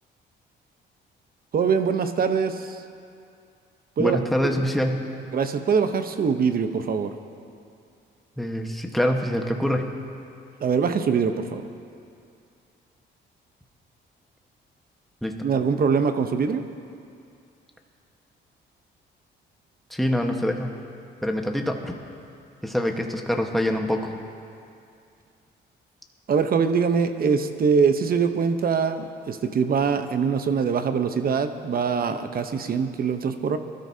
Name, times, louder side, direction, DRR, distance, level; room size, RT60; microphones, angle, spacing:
voice 1, 1.5-2.8 4.0-4.2 5.3-7.1 10.6-11.7 15.4-16.6 26.3-33.6, right 6 dB, 50° right, 8 dB, 0.9 m, -23 dB
voice 2, 4.0-5.1 8.4-9.9 15.2-15.3 19.9-20.8 21.2-21.9 22.6-24.1, equal, ahead, 2 dB, 1.3 m, -25 dB
22.5 x 13.0 x 2.8 m, 2.4 s
cardioid pair, 90°, 20 cm